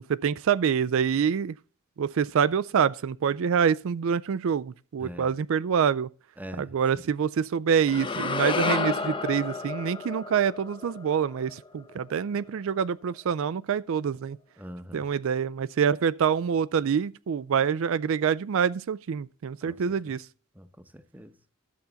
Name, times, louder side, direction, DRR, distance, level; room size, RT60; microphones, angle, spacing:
voice 1, 0.0-1.6 2.0-6.1 6.6-14.4 14.9-20.3, right 7 dB, 65° right, 0.4 m, -26 dB
voice 2, 5.0-5.4 6.4-7.0 14.6-15.1 19.6-20.2 20.5-21.4, equal, 10° right, 0.8 m, -44 dB
sound 1, 7.9-12.1, left 4 dB, 25° left, 0.7 m, -31 dB
13.0 x 6.9 x 3.9 m
head